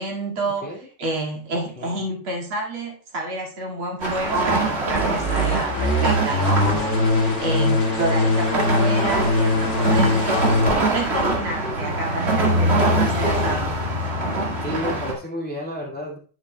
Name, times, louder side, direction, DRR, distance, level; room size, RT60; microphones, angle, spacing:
voice 1, 0.0-10.6 10.9-13.8, right 2 dB, 75° right, -1 dB, 3.0 m, -29 dB
voice 2, 1.5-2.0 11.6-12.0 14.6-16.2, left 1 dB, 5° left, -2 dB, 1.8 m, -32 dB
sound 1, 4.0-15.1, right 2 dB, 30° right, 1.9 m, -24 dB
sound 2, 4.9-10.7, left 2 dB, 35° left, 1.9 m, -21 dB
10.5 x 8.3 x 2.2 m, 0.39 s
omnidirectional pair, 2.3 m